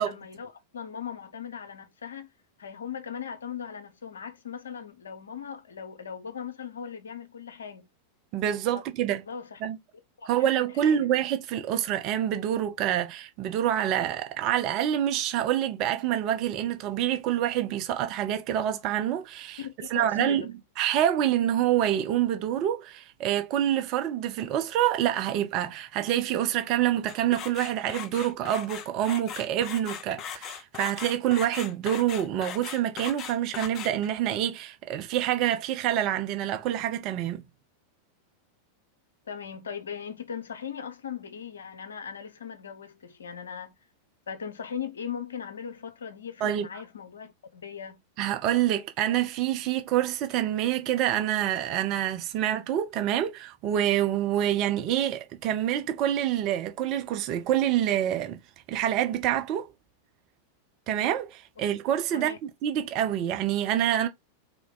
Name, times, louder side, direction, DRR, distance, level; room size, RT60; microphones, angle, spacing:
voice 1, 0.0-2.3 2.6-7.9 8.7-8.8 9.3-9.6 10.2-10.5 10.8-11.1 19.6-20.5 39.3-43.7 44.3-48.0 62.1-62.4, left 7 dB, 70° left, 0.7 m, -39 dB
voice 2, 8.3-9.2 9.6-9.8 10.3-19.6 19.9-20.5 20.8-37.4 46.4-46.7 48.2-58.4 58.7-59.7 60.9-64.1, right 11 dB, 40° right, 0.7 m, -27 dB
sound 1, 27.1-34.2, left 8 dB, 35° left, 0.5 m, -39 dB
3.6 x 2.9 x 3.8 m
figure-of-eight pair, 90°, 0 cm